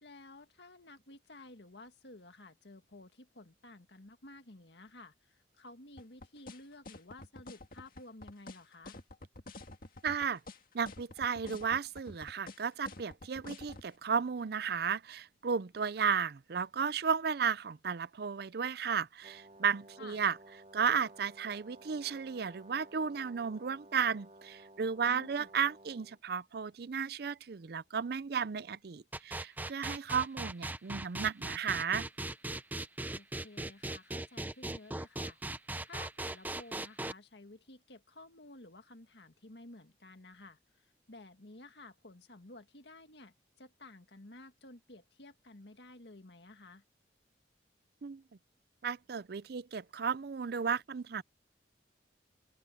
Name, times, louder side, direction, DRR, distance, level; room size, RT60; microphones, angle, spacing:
voice 1, 0.0-9.0 20.0-20.2 25.1-25.5 33.1-35.4 35.8-46.8, left 2 dB, 70° left, 1.9 m, -53 dB
sound 1, 6.0-13.9, left 2 dB, 50° left, 2.0 m, -48 dB
voice 2, 10.0-10.4 10.7-20.4 20.7-32.1 48.0-48.2 48.8-51.2, right 6 dB, 60° right, 0.5 m, -34 dB
Brass instrument, 19.2-26.2, right 1 dB, 40° right, 3.1 m, -56 dB
sound 2, 29.1-37.1, right 2 dB, 10° right, 0.6 m, -38 dB
open air
head